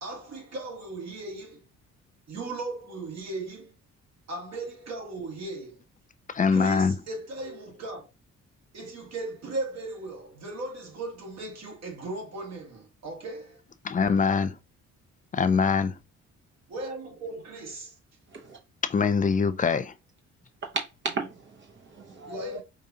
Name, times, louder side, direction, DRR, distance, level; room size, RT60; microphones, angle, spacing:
voice 1, 0.0-1.6 2.3-3.7 4.3-5.8 6.5-8.1 8.7-13.6 16.7-17.9 22.3-22.6, right 2 dB, 60° right, 1.6 m, -37 dB
voice 2, 6.3-6.9 13.8-14.6 15.3-16.0 18.9-19.9, left 5 dB, 25° left, 0.4 m, -23 dB
voice 3, 20.7-22.6, right 3 dB, 40° right, 0.7 m, -35 dB
5.0 x 2.3 x 2.7 m
cardioid pair, 90°, 30 cm